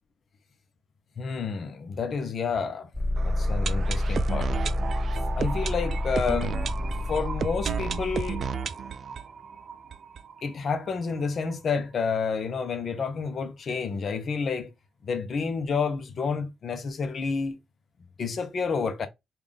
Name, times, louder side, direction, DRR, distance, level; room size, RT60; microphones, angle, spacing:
voice 1, 1.2-2.9 3.2-4.5 5.4-6.6 7.1-8.4 10.4-14.7 15.0-17.6 18.2-19.1, left 5 dB, 55° left, 0.7 m, -29 dB
sound 1, 2.9-8.5, left 1 dB, 15° left, 0.6 m, -29 dB
sound 2, 3.2-10.9 11.2-11.3 11.5-11.6 12.1-12.2, right 6 dB, 55° right, 0.4 m, -33 dB
3.4 x 2.4 x 3.8 m
cardioid pair, 70°, 0 cm